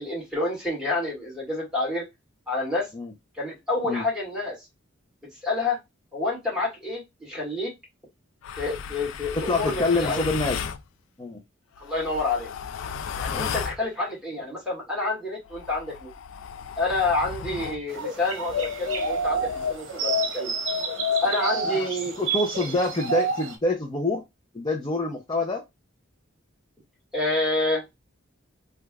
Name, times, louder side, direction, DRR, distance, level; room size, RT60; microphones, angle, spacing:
voice 1, 0.0-2.1 2.5-2.9 3.4-4.6 5.4-5.8 6.1-7.7 8.6-10.2 11.8-12.5 13.2-16.1 16.8-20.5 21.2-22.2 22.6-22.7 27.1-27.8, left 2 dB, 5° right, -3 dB, 1.7 m, -28 dB
sound 1, 8.4-10.8 11.8-13.8 15.5-17.8 18.5-21.9, left 8 dB, 75° left, 0.3 m, -32 dB
voice 2, 9.3-10.6 11.2-11.4 13.3-13.5 22.2-24.2 24.5-25.6, left 2 dB, 20° left, 0 dB, 0.5 m, -26 dB
sound 2, 17.9-23.6, right 6 dB, 70° right, 0.8 m, -30 dB
3.2 x 2.4 x 2.2 m, 0.20 s
head